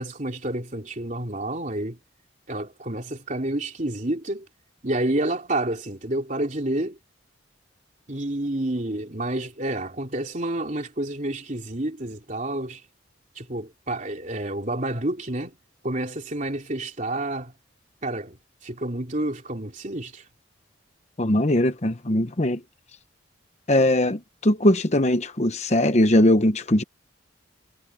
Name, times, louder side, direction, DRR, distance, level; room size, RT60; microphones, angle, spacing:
voice 1, 0.0-2.0 2.5-4.5 4.8-7.0 8.1-12.8 13.3-15.6 15.8-17.5 18.0-20.2, right 1 dB, 40° right, 3.4 m, -29 dB
voice 2, 21.2-22.6 23.7-26.8, left 1 dB, 35° left, 0.9 m, -20 dB
head